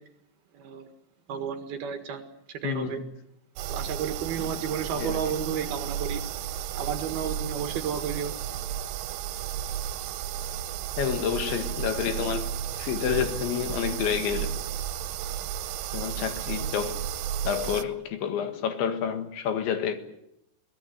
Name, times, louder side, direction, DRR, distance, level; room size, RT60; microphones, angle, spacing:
voice 1, 0.5-0.9 1.3-2.3 2.6-3.0 3.7-6.2 6.7-8.4, right 7 dB, 60° right, 6 dB, 3.3 m, -32 dB
voice 2, 2.6-2.9 5.0-5.2 11.0-12.5 12.8-14.6 15.9-17.0 17.5-20.0, left 8 dB, 75° left, 7 dB, 4.0 m, -29 dB
sound 1, 3.6-17.9, right 10 dB, 80° right, 3.4 m, -33 dB
22.5 x 19.0 x 9.3 m, 0.81 s
omnidirectional pair, 5.5 m